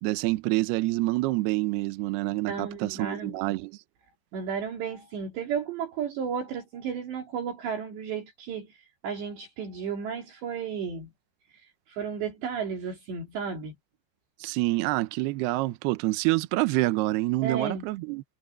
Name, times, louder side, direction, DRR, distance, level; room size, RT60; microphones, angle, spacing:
voice 1, 0.0-3.8 14.4-18.2, right 20 dB, 80° right, 2.4 m, -27 dB
voice 2, 2.5-3.3 4.3-11.1 11.9-13.7 17.4-17.8, right 6 dB, 65° right, 5.1 m, -33 dB
omnidirectional pair, 5.6 m